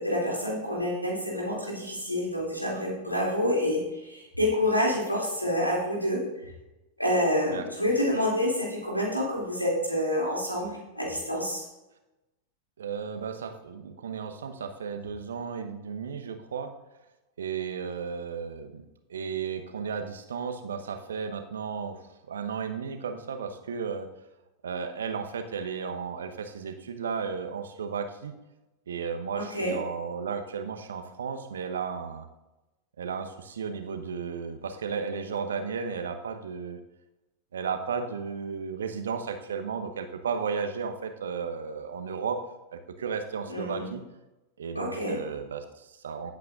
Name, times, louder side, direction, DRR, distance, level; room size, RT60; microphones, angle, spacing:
voice 1, 0.0-6.2 7.0-11.6 29.3-29.8 43.5-43.9 44.7-45.2, left 1 dB, 90° left, -3 dB, 2.9 m, -28 dB
voice 2, 12.8-16.7 17.4-18.8 19.1-22.0 22.3-24.1 24.6-28.3 28.9-32.3 33.0-36.8 37.5-42.4 42.7-44.0 44.6-46.3, right 6 dB, 65° right, 7 dB, 1.0 m, -34 dB
16.5 x 8.2 x 2.5 m, 1.0 s
figure-of-eight pair, 90°, 0 cm